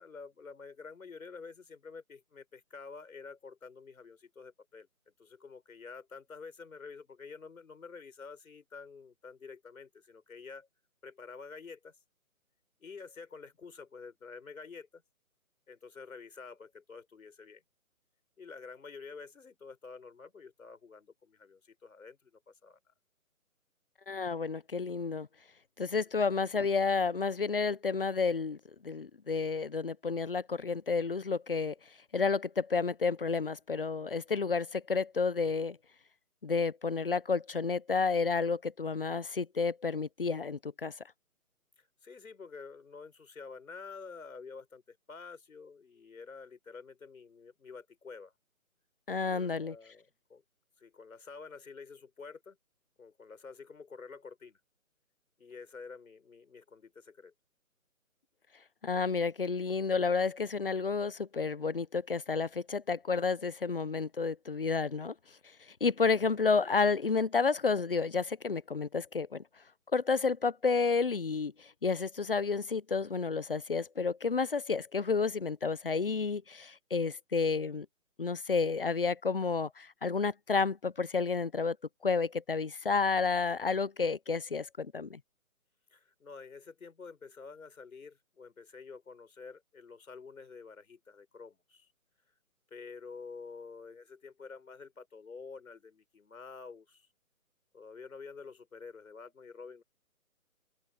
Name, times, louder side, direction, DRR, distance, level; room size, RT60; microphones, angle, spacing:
voice 1, 0.0-4.9 5.2-10.7 11.0-11.9 12.8-15.0 15.7-17.6 18.4-22.9 41.8-48.3 49.3-50.4 50.8-52.6 53.0-54.6 55.4-57.3 65.9-66.0 85.9-91.9 92.7-97.1 97.7-99.8, left 4 dB, 70° left, 5.6 m, -49 dB
voice 2, 24.1-25.3 25.8-31.7 32.1-35.8 36.4-40.9 49.1-49.8 58.8-65.1 65.7-69.4 69.9-77.9 78.2-81.8 82.0-85.2, left 4 dB, 40° left, 0.6 m, -31 dB
open air
hypercardioid pair, 165°, 43 cm